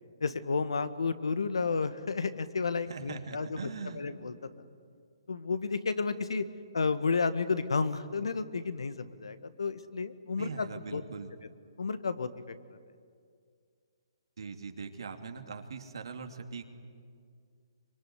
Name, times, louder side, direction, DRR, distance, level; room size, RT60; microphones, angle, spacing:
voice 1, 0.2-3.7 3.9-4.3 5.3-6.4 6.7-10.7 10.9-11.0 11.8-12.3, left 4 dB, 80° left, 11 dB, 1.5 m, -31 dB
voice 2, 2.9-4.0 10.4-11.3 14.4-16.6, right 5 dB, 70° right, 5 dB, 2.6 m, -41 dB
24.5 x 23.5 x 9.6 m, 2.2 s
hypercardioid pair, 145°, 3 cm